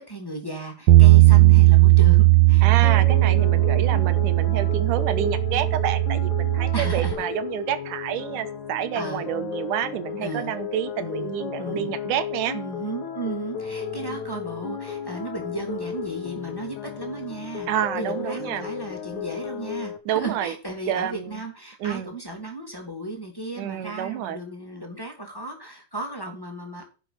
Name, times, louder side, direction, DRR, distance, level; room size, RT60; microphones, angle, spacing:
voice 1, 0.0-2.6 6.7-7.3 8.9-9.3 10.2-10.5 11.0-12.0 12.5-17.7 17.9-26.9, right 2 dB, 5° left, 2 dB, 3.0 m, -35 dB
Bass guitar, 0.9-7.1, right 19 dB, 70° right, 2.4 m, -17 dB
voice 2, 2.6-12.6 17.7-18.7 20.1-20.5 20.9-21.4 21.8-22.1 23.6-24.4, right 11 dB, 90° right, 13 dB, 2.6 m, -29 dB
sound 1, 2.8-20.0, left 7 dB, 70° left, 2.7 m, -34 dB
11.0 x 6.6 x 6.1 m, 0.34 s
omnidirectional pair, 3.6 m